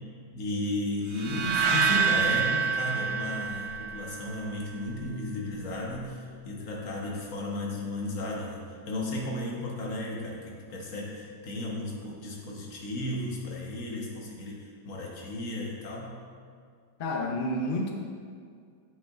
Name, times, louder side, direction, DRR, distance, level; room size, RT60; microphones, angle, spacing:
voice 1, 0.3-16.2, left 1 dB, 55° left, -2 dB, 1.3 m, -34 dB
sound 1, 1.2-4.3, right 6 dB, 75° right, 1.2 m, -27 dB
voice 2, 17.0-18.0, left 1 dB, 85° left, 1 dB, 0.4 m, -30 dB
8.4 x 5.7 x 2.4 m, 2.2 s
omnidirectional pair, 1.8 m